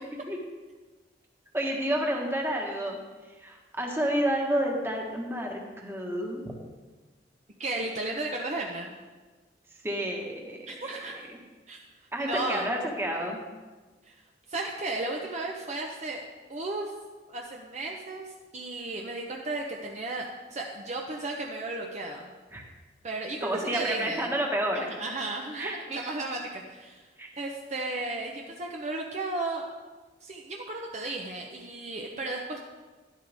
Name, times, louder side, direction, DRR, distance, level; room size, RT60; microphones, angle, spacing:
voice 1, 1.5-3.0 3.4-6.4 9.8-10.6 12.1-13.4 22.5-22.6 23.4-24.9 25.6-25.8 27.2-27.3, equal, 15° right, 0 dB, 1.5 m, -29 dB
voice 2, 7.6-8.9 10.7-11.2 11.7-11.8 12.2-12.7 14.0-14.2 14.5-16.2 16.5-16.9 17.3-22.3 23.0-24.3 24.7-27.1 27.4-29.7 30.2-32.6, right 2 dB, 40° right, 0 dB, 0.9 m, -34 dB
12.0 x 11.0 x 3.5 m, 1.3 s
head